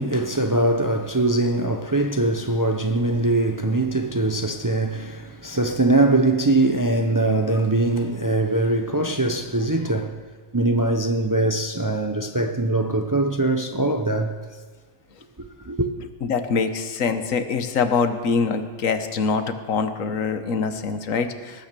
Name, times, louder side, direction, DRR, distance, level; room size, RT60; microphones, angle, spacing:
voice 1, 0.0-10.2 10.5-14.4 15.6-15.9, right 2 dB, 20° right, 0.5 m, -22 dB
voice 2, 16.2-21.7, left 5 dB, 85° left, 1.4 m, -24 dB
18.5 x 8.9 x 6.8 m
omnidirectional pair, 1.3 m